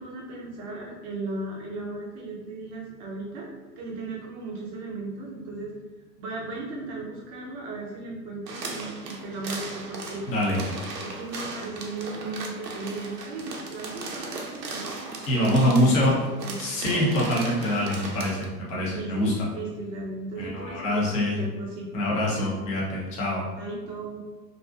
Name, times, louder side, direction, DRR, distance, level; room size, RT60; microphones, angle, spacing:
voice 1, 0.0-3.5 3.8-5.7 6.2-10.2 11.0-14.9 15.3-15.9 16.2-16.6 16.9-17.1 18.9-22.5 23.6-24.2, right 3 dB, 30° right, -3 dB, 0.6 m, -36 dB
sound 1, 8.5-18.5, right 3 dB, 90° right, 0.6 m, -37 dB
voice 2, 10.3-10.6 15.3-16.1 16.6-19.5 20.4-21.4 21.9-23.4, left 1 dB, 15° left, -5 dB, 0.4 m, -24 dB
2.5 x 2.4 x 2.3 m, 1.3 s
figure-of-eight pair, 100°, 48 cm